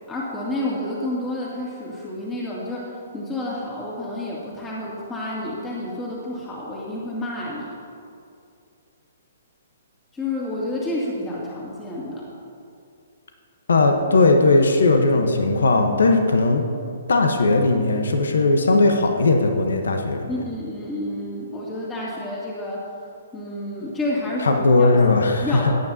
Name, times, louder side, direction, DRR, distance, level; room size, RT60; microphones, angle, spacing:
voice 1, 0.1-7.7 10.1-12.2 20.3-22.8 23.3-24.9 25.4-25.8, left 1 dB, 15° left, -6 dB, 2.5 m, -29 dB
voice 2, 13.7-16.6 17.1-20.3 24.4-25.8, left 3 dB, 70° left, 4 dB, 1.1 m, -18 dB
17.0 x 9.6 x 2.8 m, 2.5 s
figure-of-eight pair, 125°, 0 cm